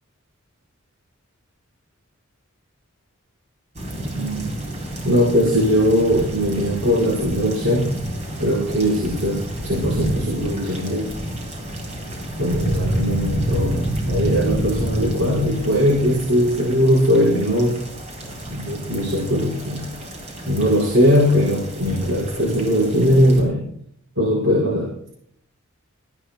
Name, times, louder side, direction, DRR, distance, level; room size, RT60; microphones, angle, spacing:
sound 1, 3.7-23.4, right 1 dB, 35° right, 7.5 m, -29 dB
voice 1, 4.2-4.5 5.0-7.9 8.4-11.1 12.4-17.8 18.5-19.8 20.5-23.7 24.2-24.9, equal, 60° right, -5 dB, 5.1 m, -20 dB
25.5 x 16.0 x 2.3 m, 0.65 s
head